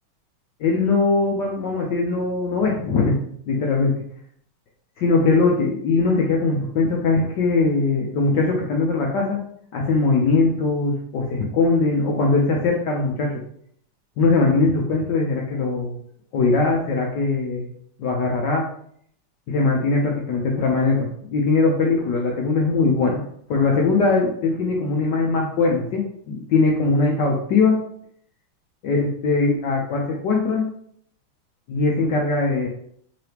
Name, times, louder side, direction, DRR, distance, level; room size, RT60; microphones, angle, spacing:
voice 1, 0.6-3.2 3.5-4.0 5.0-9.4 9.7-13.3 14.2-16.0 16.3-17.7 18.0-18.6 19.5-23.2 23.5-27.7 28.8-30.6 31.7-32.7, left 3 dB, 70° left, -1 dB, 1.1 m, -21 dB
3.7 x 3.3 x 2.9 m, 0.64 s
omnidirectional pair, 2.3 m